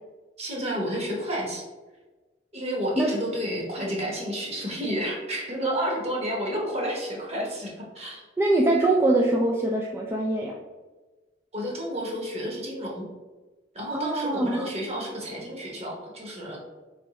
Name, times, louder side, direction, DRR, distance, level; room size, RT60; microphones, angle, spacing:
voice 1, 0.4-1.6 2.5-8.3 11.5-13.1 13.7-16.6, equal, 35° right, -2 dB, 1.1 m, -31 dB
voice 2, 8.4-10.5 13.9-14.7, right 2 dB, 15° right, -1 dB, 0.3 m, -23 dB
3.5 x 3.1 x 4.1 m, 1.2 s
head